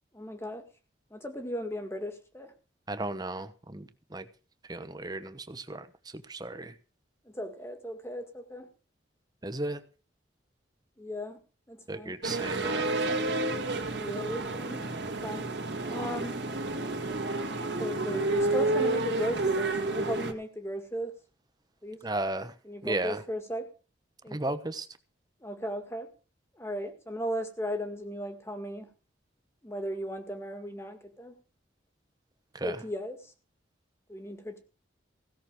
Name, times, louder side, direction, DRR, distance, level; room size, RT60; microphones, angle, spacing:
voice 1, 0.1-0.6 1.1-2.5 7.3-8.7 11.0-11.4 11.7-12.2 13.9-15.5 15.9-16.4 17.7-21.1 21.8-22.0 22.7-23.7 24.2-24.5 25.4-26.1 26.6-28.9 29.6-31.3 32.6-33.3 34.1-34.6, equal, 15° left, 1.9 m, -36 dB
voice 2, 2.9-4.2 4.7-5.9 6.3-6.7 9.4-9.8 11.9-12.9 22.0-22.5 22.8-23.2 24.3-24.9 32.5-32.8, right 2 dB, 20° right, 1.0 m, -34 dB
sound 1, 12.2-20.3, right 2 dB, 65° right, 2.3 m, -30 dB
16.5 x 6.5 x 7.6 m
head